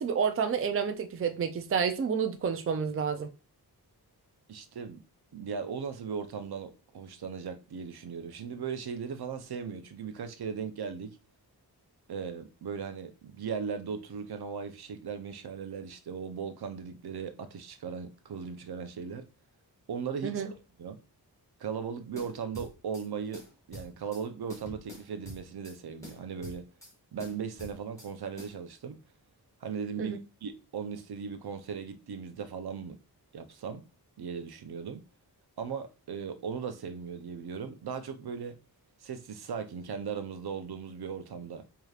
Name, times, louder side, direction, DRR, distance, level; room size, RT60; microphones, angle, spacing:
voice 1, 0.0-3.3 20.2-20.5 30.0-30.2, right 6 dB, 35° right, 0.4 m, -29 dB
voice 2, 4.5-5.0 5.3-11.2 12.1-19.3 19.9-20.4 20.8-21.0 21.6-23.4 23.7-26.7 27.1-29.0 29.6-33.0 33.3-33.8 34.2-35.0 35.6-38.6 39.0-41.7, right 6 dB, 75° right, 0.7 m, -38 dB
sound 1, 22.2-23.1 23.3-24.2 24.5-25.8 26.0-26.9 27.2-28.1 28.4-28.6, left 1 dB, 10° left, 1.6 m, -46 dB
4.9 x 2.8 x 2.4 m
wide cardioid pair, 135°, 39 cm